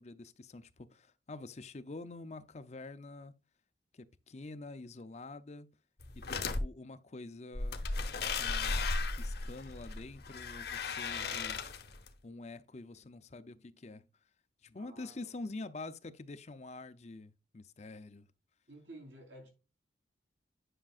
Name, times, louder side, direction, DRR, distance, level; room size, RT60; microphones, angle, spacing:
voice 1, 0.0-3.3 3.9-5.7 6.1-7.9 8.4-8.8 9.2-11.7 12.2-14.1 14.6-18.3, left 2 dB, 40° left, 0.5 m, -47 dB
sound 1, 6.0-6.6 7.5-12.1, left 4 dB, 60° left, 1.0 m, -36 dB
voice 2, 14.8-15.3 18.7-19.5, right 1 dB, 90° right, 4.0 m, -52 dB
10.0 x 5.8 x 2.4 m
head